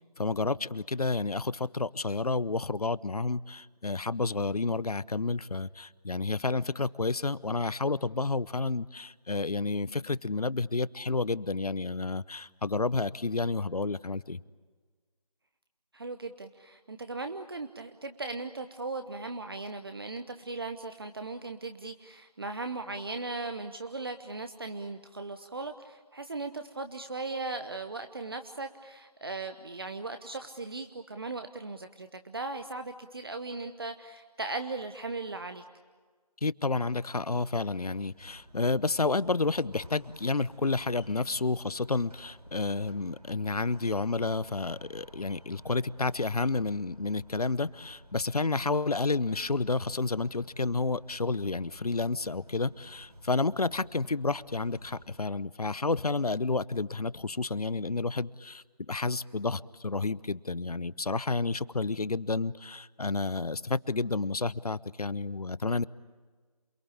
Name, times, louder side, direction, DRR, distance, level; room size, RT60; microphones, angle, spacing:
voice 1, 0.2-14.4 36.4-65.8, left 3 dB, 70° left, 20 dB, 0.8 m, -30 dB
voice 2, 15.9-35.6, right 3 dB, 35° right, 8 dB, 1.0 m, -38 dB
sound 1, 38.1-55.2, right 1 dB, 75° right, 7.9 m, -53 dB
28.0 x 22.0 x 8.6 m, 1.5 s
figure-of-eight pair, 165°, 20 cm